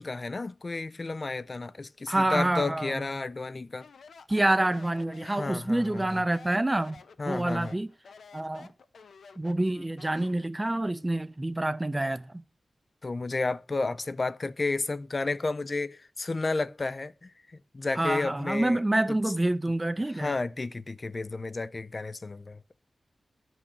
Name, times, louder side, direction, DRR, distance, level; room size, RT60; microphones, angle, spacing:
voice 1, 0.0-3.9 5.2-6.2 7.2-7.7 13.0-17.3 17.7-18.8 20.2-22.6, left 3 dB, 35° left, 0.5 m, -32 dB
voice 2, 2.1-3.0 4.3-7.0 7.3-7.9 8.3-8.7 9.4-12.4 18.0-20.4, right 1 dB, 15° right, 0.6 m, -27 dB
Speech, 3.7-10.5, left 5 dB, 85° left, 1.0 m, -51 dB
12.0 x 6.1 x 6.4 m
wide cardioid pair, 105°, 0 cm